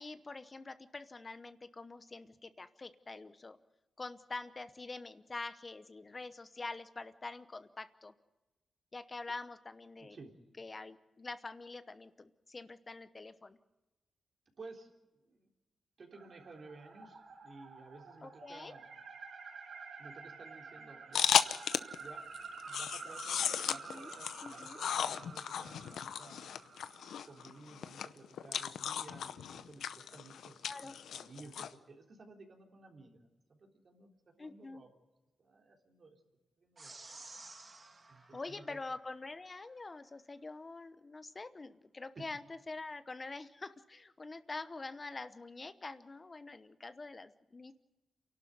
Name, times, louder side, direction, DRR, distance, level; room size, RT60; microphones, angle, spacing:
voice 1, 0.0-3.6 4.0-8.1 8.9-10.2 10.6-13.6 18.2-18.7 23.7-24.1 24.4-24.8 30.6-31.0 34.4-34.8 38.3-47.7, left 3 dB, 30° left, 12 dB, 0.9 m, -45 dB
voice 2, 10.0-10.3 14.6-14.9 15.2-15.5 16.0-18.9 20.0-21.3 22.0-22.2 22.6-26.5 27.2-33.2 33.5-34.9 35.4-36.2 36.6-37.1 38.1-38.8 42.1-42.2, right 3 dB, 50° right, 1 dB, 3.6 m, -55 dB
sound 1, 16.1-27.6, right 4 dB, 75° right, 3.0 m, -50 dB
sound 2, 21.1-22.0 22.3-31.7, left 8 dB, 90° left, 0.7 m, -35 dB
sound 3, 36.8-39.4, right 3 dB, 35° right, 2.1 m, -53 dB
28.0 x 12.0 x 9.4 m, 1.1 s
cardioid pair, 85°, 0 cm